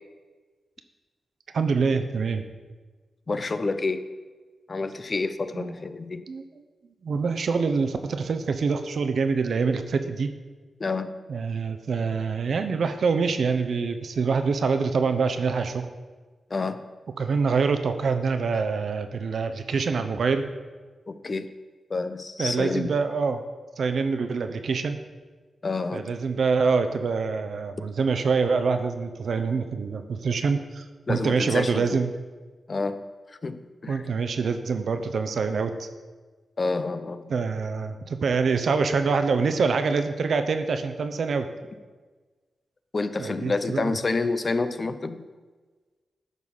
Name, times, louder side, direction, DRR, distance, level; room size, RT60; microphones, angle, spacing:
voice 1, 1.5-2.4 5.5-5.7 6.3-6.4 7.0-10.3 11.3-15.9 17.2-20.4 22.4-23.4 23.8-25.0 25.9-32.1 33.9-35.9 37.3-41.5 43.2-43.9, right 5 dB, 70° right, 8 dB, 0.8 m, -25 dB
voice 2, 3.3-4.0 4.7-6.2 10.8-11.1 16.5-16.8 21.1-21.5 21.9-22.9 25.6-26.1 31.1-31.9 32.7-33.0 33.4-34.0 36.6-37.3 42.9-45.2, left 3 dB, 45° left, 11 dB, 0.7 m, -28 dB
11.0 x 4.1 x 7.2 m, 1.4 s
cardioid pair, 60°, 0 cm